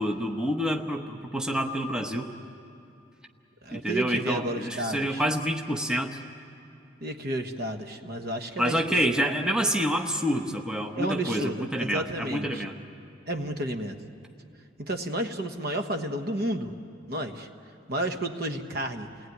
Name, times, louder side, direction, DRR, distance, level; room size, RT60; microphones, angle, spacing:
voice 1, 0.0-2.3 3.7-6.2 8.6-12.7, equal, 5° right, 1 dB, 1.0 m, -28 dB
voice 2, 3.6-5.2 7.0-8.8 10.9-12.6 13.3-14.0 14.8-16.7 17.1-17.5 17.9-19.1, right 1 dB, 55° right, 6 dB, 1.3 m, -31 dB
29.0 x 19.0 x 9.4 m, 2.6 s
head